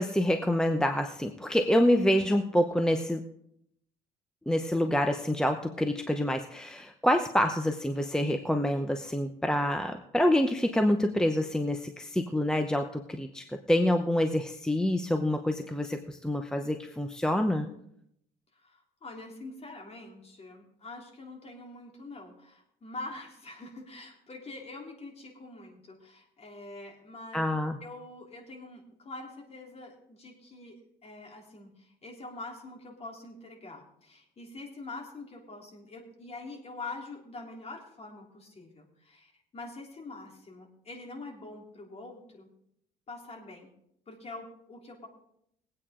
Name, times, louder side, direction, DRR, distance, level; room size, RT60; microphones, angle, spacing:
voice 1, 0.0-3.2 4.5-17.7 27.3-27.8, left 1 dB, 5° left, 6 dB, 0.7 m, -27 dB
voice 2, 18.5-27.5 27.8-42.5 43.1-43.7 44.1-45.1, left 2 dB, 40° left, 0 dB, 3.4 m, -45 dB
21.0 x 8.7 x 3.7 m, 0.73 s
cardioid pair, 110°, 17 cm